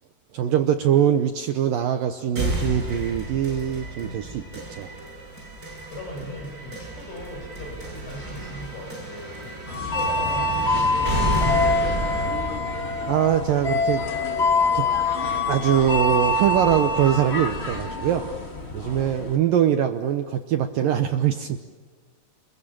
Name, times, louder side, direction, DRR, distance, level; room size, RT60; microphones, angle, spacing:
voice 1, 0.3-4.9 13.1-14.1 14.7-14.9 15.5-18.3 18.7-21.6, right 9 dB, 75° right, 7 dB, 2.1 m, -22 dB
sound 1, 2.3-14.3, right 1 dB, 20° right, 7.8 m, -32 dB
voice 2, 5.9-11.7 16.3-16.4 18.8-19.2, left 1 dB, 80° left, 1 dB, 9.7 m, -39 dB
sound 2, 9.7-19.3, left 2 dB, 30° left, 1.1 m, -25 dB
29.5 x 22.0 x 8.8 m, 1.5 s
omnidirectional pair, 5.2 m